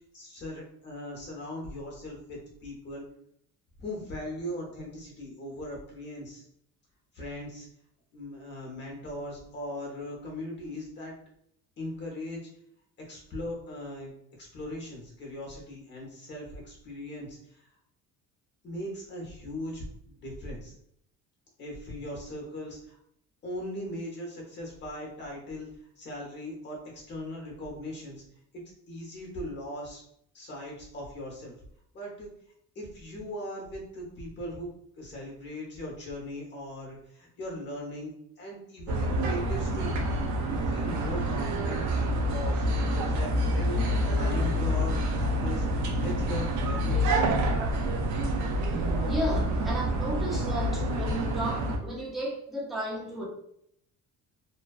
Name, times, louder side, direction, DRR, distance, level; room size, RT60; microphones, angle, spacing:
voice 1, 0.1-3.0 3.8-6.4 7.1-7.7 8.1-11.1 11.8-12.4 13.1-14.1 14.4-17.6 18.6-20.7 21.6-23.0 23.4-25.7 26.0-28.2 28.9-30.0 30.3-31.5 31.9-32.3 32.7-34.7 35.0-39.9 40.5-42.6 42.9-47.1, left 1 dB, 35° left, -1 dB, 0.8 m, -39 dB
sound 1, 38.9-51.8, equal, 60° right, 0.4 m, -27 dB
voice 2, 49.1-53.3, equal, ahead, -4 dB, 0.4 m, -33 dB
2.5 x 2.2 x 2.3 m, 0.70 s
cardioid pair, 155°, 33 cm